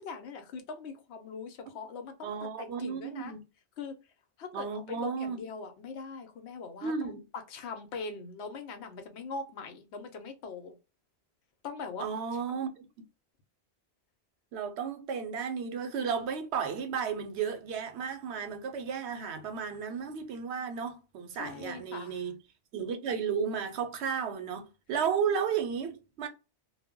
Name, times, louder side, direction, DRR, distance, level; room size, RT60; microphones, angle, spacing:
voice 1, 0.0-3.3 3.8-4.0 4.4-7.1 7.5-10.7 11.6-12.0 12.5-12.6 21.4-22.3, left 4 dB, 85° left, 0.9 m, -41 dB
voice 2, 2.2-3.4 4.5-5.4 6.8-7.2 12.0-12.9 14.5-22.3 22.7-26.3, right 6 dB, 85° right, 0.9 m, -33 dB
2.2 x 2.0 x 3.5 m
omnidirectional pair, 1.1 m